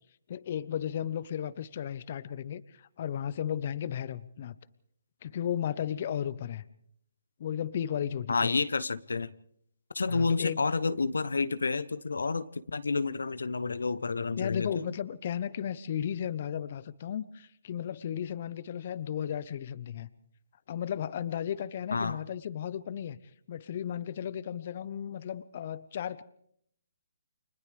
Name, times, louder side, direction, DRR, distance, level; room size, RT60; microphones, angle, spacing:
voice 1, 0.3-4.6 5.2-6.6 7.4-8.6 10.1-10.6 14.4-20.1 20.7-23.2 23.5-26.2, left 9 dB, 45° left, 18 dB, 0.9 m, -34 dB
voice 2, 8.3-9.3 9.9-14.8 21.9-22.2, left 4 dB, 80° left, 16 dB, 0.8 m, -29 dB
30.0 x 26.0 x 3.4 m, 0.70 s
figure-of-eight pair, 140°, 0 cm